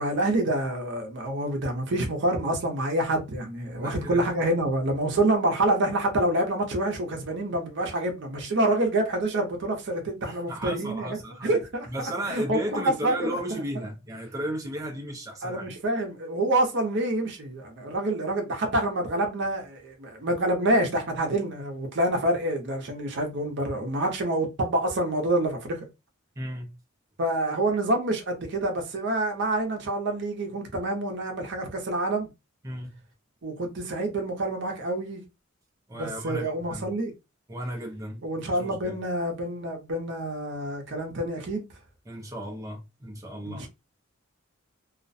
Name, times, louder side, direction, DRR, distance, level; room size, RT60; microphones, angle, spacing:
voice 1, 0.0-13.6 15.4-25.8 27.2-32.3 33.4-35.2 35.9-37.1 38.2-41.7 43.5-43.7, right 1 dB, 55° right, 0.7 m, -27 dB
voice 2, 3.8-4.2 10.2-11.5 11.9-15.7 26.4-26.7 32.6-32.9 35.9-36.9 37.5-38.2 38.5-39.0 42.1-43.7, equal, 15° right, 0.5 m, -34 dB
2.4 x 2.1 x 2.6 m
head